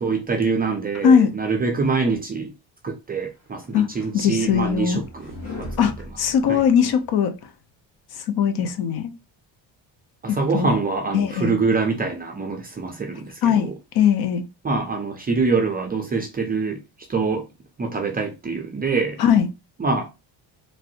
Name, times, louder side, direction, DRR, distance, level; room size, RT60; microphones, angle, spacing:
voice 1, 0.0-2.5 2.8-5.7 6.5-6.7 10.2-13.7 14.6-16.8 17.1-17.5 17.8-19.2 19.8-20.1, right 4 dB, 20° right, 0.4 m, -25 dB
sound 1, 3.4-7.1, left 1 dB, 35° left, 1.3 m, -39 dB
voice 2, 4.1-5.0 5.8-7.3 8.2-9.1 10.3-10.7 11.1-11.6 13.4-14.4 19.2-19.5, left 8 dB, 55° left, 0.6 m, -20 dB
3.2 x 2.6 x 2.6 m
cardioid pair, 145°, 45 cm